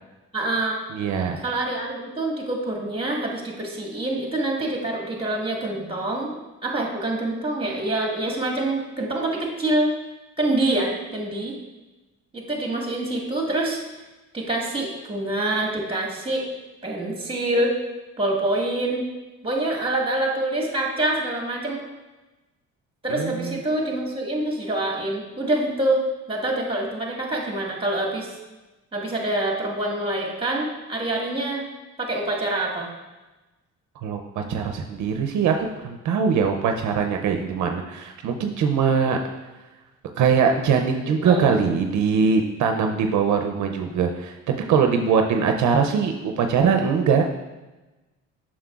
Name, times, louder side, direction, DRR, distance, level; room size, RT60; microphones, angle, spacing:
voice 1, 0.3-0.8 1.4-6.3 6.6-9.9 10.4-11.5 12.3-13.8 14.3-16.5 16.8-17.7 18.2-19.0 19.4-21.9 23.0-28.3 28.9-31.6 32.0-32.9 41.1-41.5, right 1 dB, 20° right, -1 dB, 1.7 m, -26 dB
voice 2, 0.9-1.4 23.1-23.6 34.0-39.2 40.2-47.2, right 6 dB, 70° right, 4 dB, 0.6 m, -22 dB
7.4 x 6.2 x 2.4 m, 1.1 s
cardioid pair, 90°, 30 cm